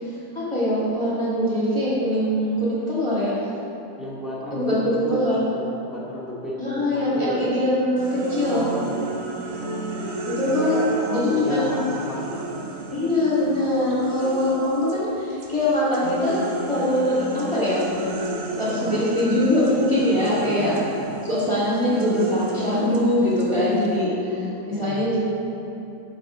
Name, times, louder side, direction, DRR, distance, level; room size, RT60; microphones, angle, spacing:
voice 1, 0.3-3.4 4.5-5.5 6.6-8.8 10.3-10.8 11.0-11.8 12.9-16.4 16.7-17.9 18.6-20.7 21.2-25.2, left 1 dB, 15° left, -9 dB, 2.0 m, -22 dB
voice 2, 3.9-7.4 8.4-9.9 10.3-12.5 18.6-19.1 20.4-21.3 24.7-25.2, left 1 dB, ahead, -7 dB, 1.9 m, -34 dB
sound 1, 8.0-15.1 15.4-24.0, right 2 dB, 60° right, 1.2 m, -33 dB
11.5 x 6.6 x 3.7 m, 2.9 s
omnidirectional pair, 2.1 m